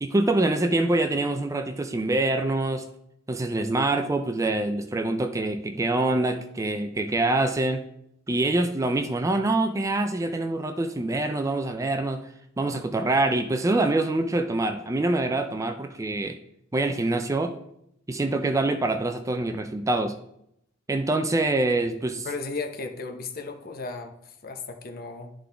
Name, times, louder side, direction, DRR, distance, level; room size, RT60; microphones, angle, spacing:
voice 1, 0.0-2.9 3.3-7.9 8.3-12.3 12.6-16.4 16.7-17.6 18.1-20.1 20.9-22.3, right 2 dB, 15° right, 7 dB, 0.4 m, -25 dB
voice 2, 22.2-25.3, left 3 dB, 50° left, 5 dB, 0.8 m, -35 dB
11.0 x 3.8 x 3.4 m, 0.77 s
head